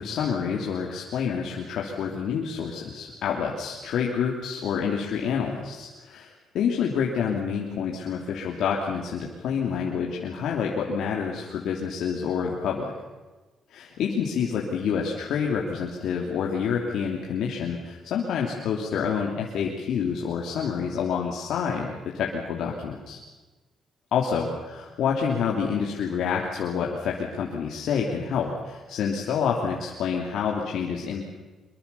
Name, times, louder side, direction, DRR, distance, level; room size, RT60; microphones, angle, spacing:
voice 1, 0.0-12.9 13.7-23.2 24.1-31.3, left 6 dB, 75° left, -1 dB, 3.1 m, -28 dB
24.5 x 22.5 x 7.1 m, 1.2 s
cardioid pair, 90°, 0 cm